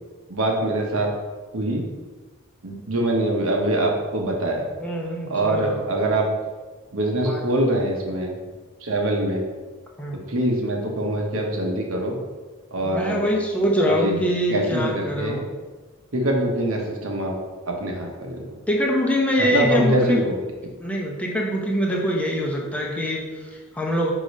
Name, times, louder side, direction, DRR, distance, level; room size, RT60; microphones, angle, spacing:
voice 1, 0.3-1.1 1.5-1.8 2.6-4.6 5.3-6.2 6.9-8.3 8.8-9.4 10.3-12.2 12.7-13.2 13.8-14.1 14.5-15.4 16.1-17.4 17.7-18.4 19.4-20.4, right 1 dB, 75° right, 1 dB, 1.1 m, -23 dB
voice 2, 4.8-5.9 7.2-7.4 10.0-10.2 12.8-15.4 18.7-20.2 20.8-24.1, equal, 5° left, -2 dB, 0.7 m, -24 dB
4.9 x 3.7 x 5.3 m, 1.3 s
head